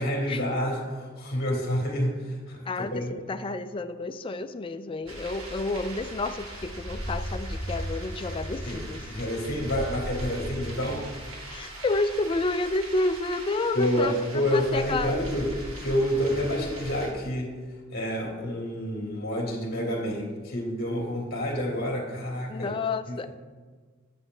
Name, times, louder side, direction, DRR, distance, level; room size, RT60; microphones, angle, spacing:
voice 1, 0.0-3.2 8.6-8.8 9.1-11.0 13.7-15.5 15.8-17.5 17.9-22.7 23.1-23.3, equal, 50° left, -2 dB, 2.7 m, -28 dB
voice 2, 2.7-9.0 11.5-14.2 14.5-15.2 22.5-23.3, left 2 dB, 25° left, 9 dB, 0.4 m, -30 dB
sound 1, 5.1-17.1, equal, 75° right, 2.1 m, -38 dB
9.3 x 8.1 x 3.8 m, 1.5 s
head